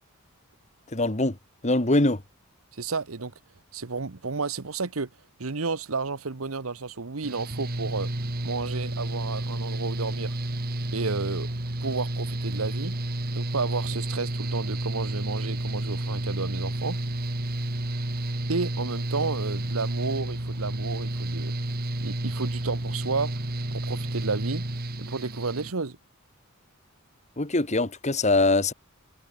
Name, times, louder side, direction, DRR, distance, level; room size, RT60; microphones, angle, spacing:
voice 1, 0.9-1.4 1.6-2.2 27.4-28.7, left 2 dB, 35° left, 1.9 m, -23 dB
voice 2, 2.7-3.3 3.7-5.1 5.4-8.1 8.4-10.3 10.9-11.5 11.8-12.9 13.3-17.0 18.5-21.6 22.0-23.3 23.7-24.6 25.0-26.0, right 4 dB, 90° right, 1.1 m, -31 dB
Mechanical fan, 7.2-25.7, right 1 dB, 45° right, 2.2 m, -31 dB
head